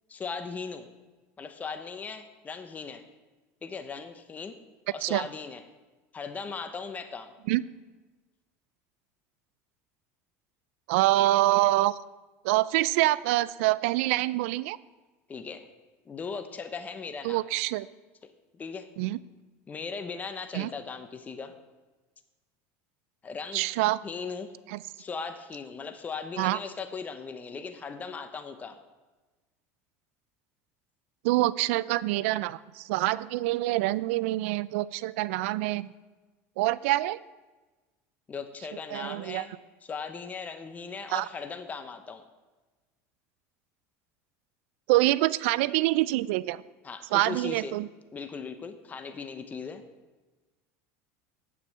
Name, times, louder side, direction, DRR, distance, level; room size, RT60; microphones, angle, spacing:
voice 1, 0.1-0.9 1.4-3.1 3.6-4.6 4.9-5.6 6.1-7.3 15.3-15.7 16.1-17.4 18.5-18.9 19.7-21.5 23.2-23.6 24.0-24.5 25.0-28.8 38.3-39.5 39.9-42.2 46.8-47.7 48.1-49.8, left 5 dB, 25° left, 8 dB, 0.8 m, -38 dB
voice 2, 10.9-12.0 12.4-14.8 17.2-17.9 19.0-19.2 20.5-20.7 23.5-24.0 24.7-24.8 26.4-26.6 31.2-35.9 36.6-37.2 38.9-39.5 41.1-41.3 44.9-46.6 47.1-47.9, right 17 dB, 80° right, 18 dB, 0.3 m, -26 dB
8.5 x 7.4 x 5.4 m, 1.2 s
supercardioid pair, 120°, 7 cm